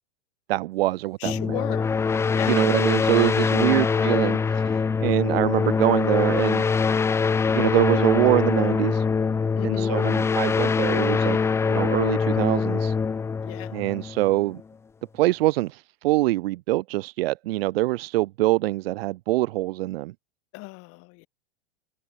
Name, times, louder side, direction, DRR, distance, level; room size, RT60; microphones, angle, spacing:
voice 1, 0.5-1.6 2.5-6.6 7.5-9.0 9.6-12.9 13.7-14.6 15.1-20.1, right 18 dB, 65° right, 1.0 m, -24 dB
voice 2, 1.2-1.9 2.2-2.7 3.7-4.2 9.6-10.0 13.4-13.8 20.5-21.3, left 26 dB, 45° left, 6.2 m, -36 dB
sound 1, 1.2-14.6, left 5 dB, 10° left, 0.5 m, -23 dB
hypercardioid pair, 130°, 32 cm